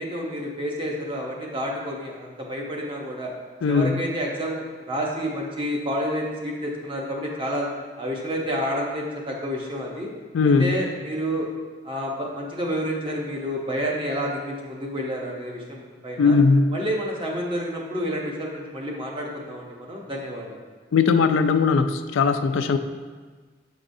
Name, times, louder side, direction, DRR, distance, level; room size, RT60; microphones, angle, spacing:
voice 1, 0.0-3.3 3.7-7.7 8.0-10.1 10.4-11.5 11.8-16.4 16.7-20.6, equal, 25° right, -2 dB, 0.8 m, -29 dB
voice 2, 3.6-4.0 10.3-10.8 16.2-16.7 20.9-22.8, left 4 dB, 85° left, 9 dB, 0.3 m, -19 dB
7.5 x 4.9 x 2.6 m, 1.4 s
head